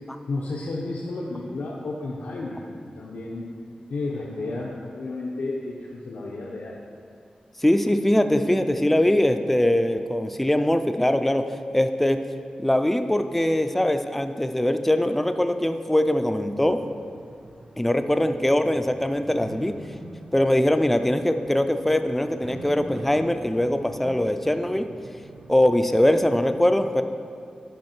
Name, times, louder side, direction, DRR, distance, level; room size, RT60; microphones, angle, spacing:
voice 1, 0.3-2.7 2.9-3.5 3.9-6.8, left 2 dB, 90° left, -4 dB, 0.8 m, -32 dB
voice 2, 7.6-12.2 12.6-16.8 17.8-19.8 20.3-24.9 25.5-27.0, left 1 dB, 5° left, 8 dB, 0.3 m, -22 dB
sound 1, 16.5-26.5, right 1 dB, 35° right, 0.6 m, -44 dB
9.4 x 5.5 x 4.4 m, 2.4 s
wide cardioid pair, 125°, 3 cm